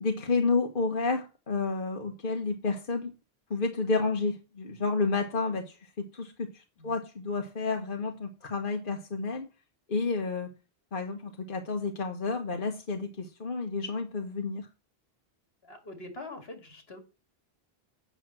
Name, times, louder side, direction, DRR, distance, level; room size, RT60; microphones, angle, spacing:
voice 1, 0.0-3.1 3.5-9.5 9.9-10.5 10.9-14.7, left 3 dB, 55° left, 1.4 m, -30 dB
voice 2, 15.6-17.0, left 2 dB, 75° left, 2.4 m, -44 dB
8.6 x 6.0 x 7.6 m
omnidirectional pair, 1.0 m